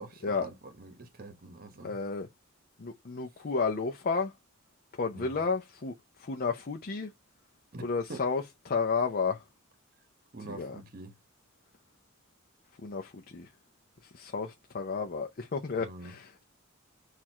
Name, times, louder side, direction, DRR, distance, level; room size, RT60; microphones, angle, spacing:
voice 1, 0.0-2.0 5.1-5.4 7.7-8.2 10.3-11.1 15.8-16.1, right 2 dB, 45° right, 1.0 m, -45 dB
voice 2, 1.8-2.3 2.8-4.3 5.0-7.1 7.8-9.4 10.5-10.8 12.8-13.5 14.1-16.4, left 4 dB, 45° left, 0.5 m, -32 dB
4.4 x 2.4 x 4.2 m
head